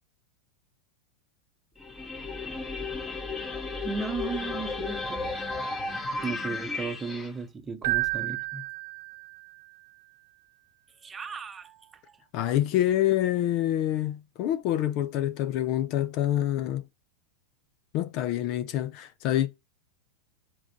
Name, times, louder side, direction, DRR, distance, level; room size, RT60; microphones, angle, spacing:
sound 1, 1.8-7.3, left 3 dB, 15° left, 1.2 m, -34 dB
voice 1, 3.8-5.4 6.2-8.6 11.0-11.9, right 4 dB, 20° right, 0.9 m, -35 dB
Keyboard (musical), 7.8-9.7, right 23 dB, 50° right, 1.0 m, -31 dB
voice 2, 12.3-16.8 17.9-19.5, left 12 dB, 40° left, 0.6 m, -26 dB
7.5 x 3.8 x 6.5 m
figure-of-eight pair, 90°, 0 cm